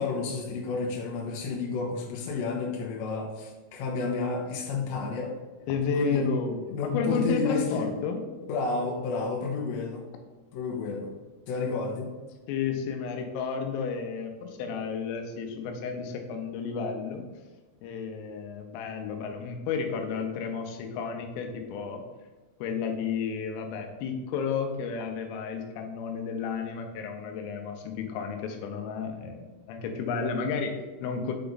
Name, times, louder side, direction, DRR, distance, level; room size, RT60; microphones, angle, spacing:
voice 1, 0.0-5.4 6.0-6.2 6.7-7.9 8.5-10.0 10.5-11.1 11.5-12.1, left 4 dB, 70° left, -2 dB, 3.0 m, -31 dB
voice 2, 5.7-8.3 12.5-17.2 17.8-22.0 22.6-31.3, left 5 dB, 85° left, 4 dB, 3.4 m, -32 dB
9.0 x 3.4 x 3.9 m, 1.2 s
omnidirectional pair, 5.8 m